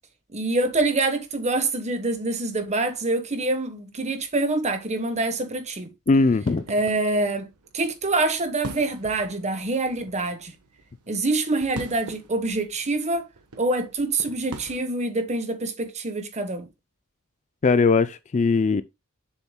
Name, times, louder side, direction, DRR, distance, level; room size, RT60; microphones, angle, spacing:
voice 1, 0.3-5.9 6.7-7.5 7.7-10.5 11.1-13.3 13.6-16.7, right 2 dB, 30° right, 1.2 m, -25 dB
voice 2, 6.1-6.6 17.6-18.8, left 4 dB, 35° left, 0.4 m, -19 dB
sound 1, 6.1-14.8, right 1 dB, 85° right, 1.2 m, -43 dB
7.1 x 7.0 x 2.2 m
head